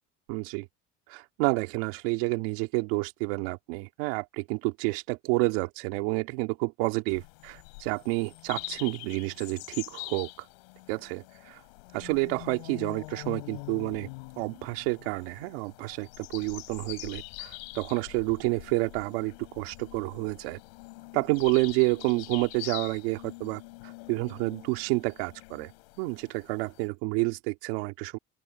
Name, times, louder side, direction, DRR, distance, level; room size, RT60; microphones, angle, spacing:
voice 1, 0.3-0.7 1.1-10.5 10.9-11.6 11.9-14.1 14.4-20.6 21.1-25.7 26.0-28.2, right 25 dB, 85° right, 2.9 m, -29 dB
sound 1, 7.1-26.9, left 26 dB, 90° left, 4.1 m, -44 dB
open air
supercardioid pair, 115°, 30 cm